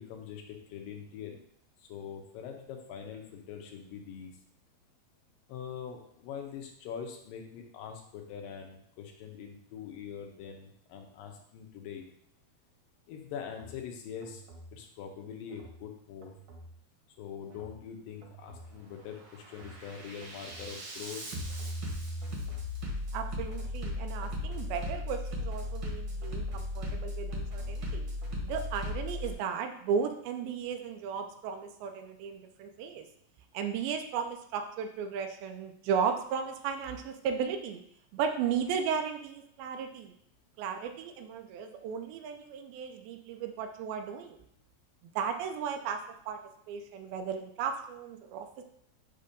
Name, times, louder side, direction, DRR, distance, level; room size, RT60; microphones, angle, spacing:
voice 1, 0.0-1.4 1.8-4.3 5.5-12.1 13.1-14.4 14.7-16.3 17.2-21.2, left 7 dB, 75° left, 3 dB, 2.4 m, -43 dB
Bass drum, 13.6-13.7 14.2-14.7 15.5-15.7 16.2-16.7 17.5-17.7 18.2-18.7 19.1-29.3, left 1 dB, 55° right, 1.4 m, -37 dB
voice 2, 23.1-28.1 28.4-33.1 33.5-37.8 38.1-40.1 40.6-44.4 45.0-46.0 46.3-46.4 46.7-48.5, right 7 dB, 90° right, 5 dB, 2.4 m, -35 dB
7.3 x 2.8 x 5.1 m, 0.71 s
omnidirectional pair, 4.2 m